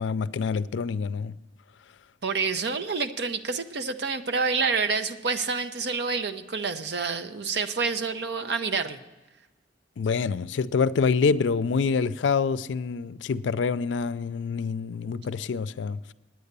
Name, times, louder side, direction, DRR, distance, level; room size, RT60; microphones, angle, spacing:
voice 1, 0.0-1.3 10.0-16.1, left 5 dB, 80° left, 0.4 m, -26 dB
voice 2, 2.2-9.0, right 4 dB, 60° right, 0.7 m, -28 dB
9.6 x 9.3 x 6.7 m
head